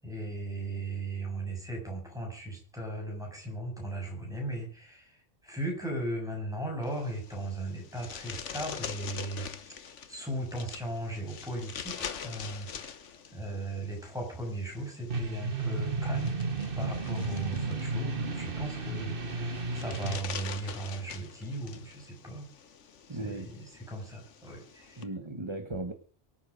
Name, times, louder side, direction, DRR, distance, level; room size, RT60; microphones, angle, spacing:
voice 1, 0.0-9.5 10.1-13.0 13.3-16.4 16.8-22.5 23.1-25.1, right 2 dB, 5° right, 1 dB, 7.4 m, -37 dB
sound 1, 6.8-25.0, left 7 dB, 80° left, 1.4 m, -45 dB
sound 2, 15.1-20.2, right 3 dB, 50° right, 1.5 m, -33 dB
voice 2, 23.1-23.5 25.0-25.9, right 2 dB, 25° right, 7 dB, 1.3 m, -37 dB
23.0 x 8.8 x 5.0 m, 0.43 s
omnidirectional pair, 1.2 m